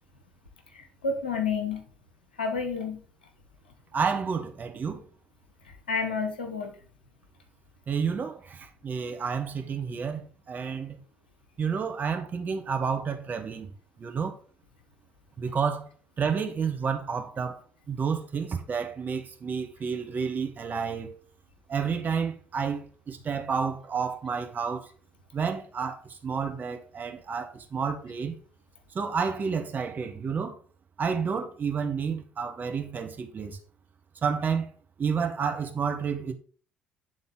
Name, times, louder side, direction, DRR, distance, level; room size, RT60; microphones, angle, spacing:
voice 1, 0.7-1.8 2.4-3.0 5.9-6.7, left 5 dB, 85° left, 0.8 m, -30 dB
voice 2, 3.9-5.0 7.9-11.0 11.6-13.7 14.0-14.3 15.4-15.9 16.2-17.6 17.9-21.1 21.7-24.9 25.3-28.3 28.9-30.6 31.0-33.6 34.2-34.7 35.0-36.3, right 6 dB, 35° right, 1.2 m, -30 dB
8.9 x 3.8 x 3.8 m
figure-of-eight pair, 55°, 5 cm